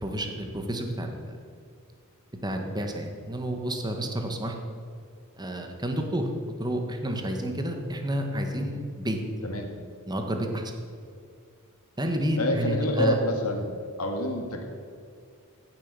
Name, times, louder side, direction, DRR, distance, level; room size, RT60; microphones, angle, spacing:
voice 1, 0.0-1.2 2.4-4.5 5.4-6.3 6.6-9.2 10.1-10.7 12.0-13.2, right 1 dB, 20° right, 4 dB, 1.5 m, -30 dB
voice 2, 12.4-13.7 14.0-14.7, left 1 dB, 80° left, 3 dB, 2.0 m, -27 dB
16.0 x 7.7 x 6.8 m, 2.2 s
head